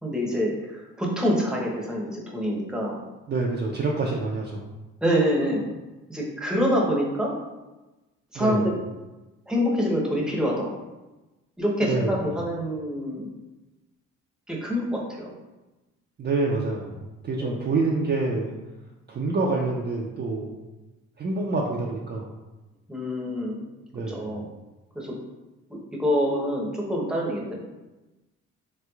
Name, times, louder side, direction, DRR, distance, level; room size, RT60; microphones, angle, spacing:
voice 1, 0.0-3.0 5.0-5.7 6.1-7.3 8.3-8.7 9.5-10.7 11.6-13.3 14.5-15.3 17.4-17.6 22.9-23.7 24.1-24.4 24.9-25.1 25.7-27.5, equal, ahead, -3 dB, 0.7 m, -26 dB
voice 2, 3.3-4.7 8.3-8.6 11.8-12.2 16.2-18.5 19.1-20.5 21.2-22.3 23.9-24.3, right 3 dB, 35° right, -2 dB, 0.4 m, -27 dB
3.3 x 3.0 x 2.3 m, 1.1 s
cardioid pair, 90°, 30 cm